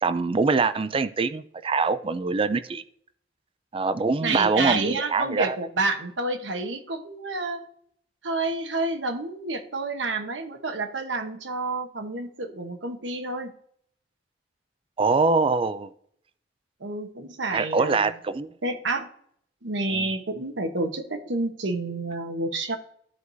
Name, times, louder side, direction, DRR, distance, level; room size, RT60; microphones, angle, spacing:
voice 1, 0.0-2.8 3.7-5.6 15.0-15.9 17.5-18.5 19.9-20.1, right 4 dB, 30° right, 13 dB, 0.4 m, -24 dB
voice 2, 4.2-7.7 8.2-13.5 16.8-18.1 18.6-19.1 19.6-22.8, right 2 dB, 80° right, 6 dB, 1.1 m, -29 dB
13.5 x 4.7 x 2.7 m, 0.66 s
head